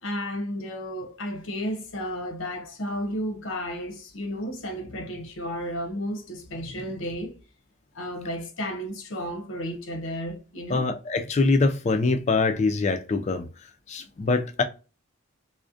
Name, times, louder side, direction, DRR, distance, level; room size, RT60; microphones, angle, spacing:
voice 1, 0.0-7.4 7.9-10.9, equal, 65° left, 0.6 m, -33 dB
voice 2, 10.7-13.5 13.9-14.6, left 3 dB, 35° left, 0.3 m, -24 dB
2.5 x 2.0 x 2.4 m
head